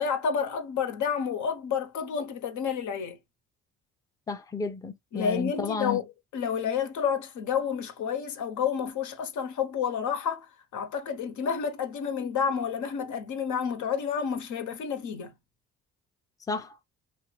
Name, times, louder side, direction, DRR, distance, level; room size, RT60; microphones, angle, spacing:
voice 1, 0.0-3.2 5.1-6.0 6.3-10.5 10.7-15.3, left 7 dB, 75° left, 0.9 m, -30 dB
voice 2, 4.3-6.0 16.5-16.8, left 4 dB, 10° left, 0.5 m, -32 dB
2.6 x 2.4 x 3.2 m
cardioid pair, 90°, 30 cm